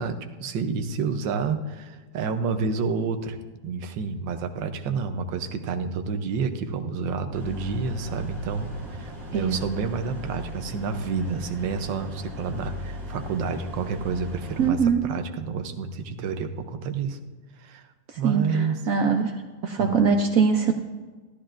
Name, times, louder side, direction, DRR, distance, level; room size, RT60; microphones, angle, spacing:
voice 1, 0.0-3.4 3.6-17.2 17.6-17.9 18.2-18.8 19.8-19.9, right 5 dB, 85° right, 7 dB, 1.5 m, -29 dB
sound 1, 7.3-14.7, left 1 dB, 50° right, 2.7 m, -38 dB
voice 2, 14.6-15.0 18.1-19.4 19.6-20.7, right 6 dB, 65° right, 5 dB, 0.8 m, -22 dB
13.0 x 12.5 x 2.5 m, 1.4 s
omnidirectional pair, 2.0 m